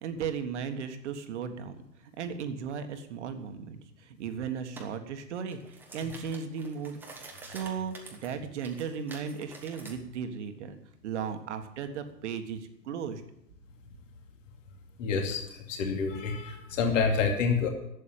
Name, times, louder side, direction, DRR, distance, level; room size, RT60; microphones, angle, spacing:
voice 1, 0.0-1.8 2.2-7.0 7.5-10.8 11.0-13.2, right 7 dB, 45° right, 8 dB, 1.6 m, -36 dB
sound 1, 4.8-4.9 5.4-10.0, right 3 dB, 5° right, 1.0 m, -47 dB
voice 2, 15.0-17.7, left 5 dB, 50° left, 3 dB, 2.6 m, -28 dB
11.5 x 8.3 x 9.0 m, 0.82 s
hypercardioid pair, 145°, 49 cm